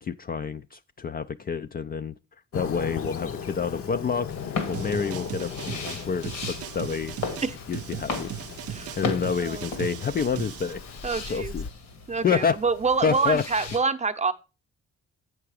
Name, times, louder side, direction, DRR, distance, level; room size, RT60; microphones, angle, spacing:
voice 1, 0.0-2.1 2.5-7.1 7.7-8.3 9.0-10.8 11.3-11.7 12.2-12.6 13.0-13.4, left 6 dB, 30° left, 0.4 m, -28 dB
Fireworks, 2.5-11.7, left 7 dB, 50° left, 0.8 m, -38 dB
sound 1, 4.3-13.8, left 4 dB, 85° left, 2.0 m, -37 dB
sound 2, 4.7-10.7, right 11 dB, 50° right, 0.5 m, -38 dB
voice 2, 11.0-11.6 12.1-14.3, right 4 dB, 25° right, 0.7 m, -26 dB
7.8 x 5.9 x 4.8 m
cardioid pair, 90°, 30 cm